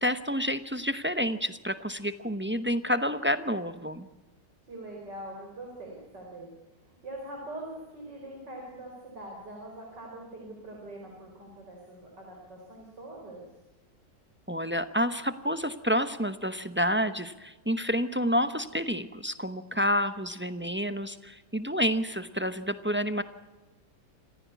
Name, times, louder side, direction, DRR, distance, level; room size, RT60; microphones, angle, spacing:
voice 1, 0.0-4.1 14.5-23.2, equal, 10° right, 11 dB, 0.6 m, -29 dB
voice 2, 4.7-6.5 6.8-13.5, right 1 dB, 85° right, 0 dB, 5.2 m, -43 dB
27.5 x 15.0 x 8.3 m, 1.1 s
omnidirectional pair, 1.8 m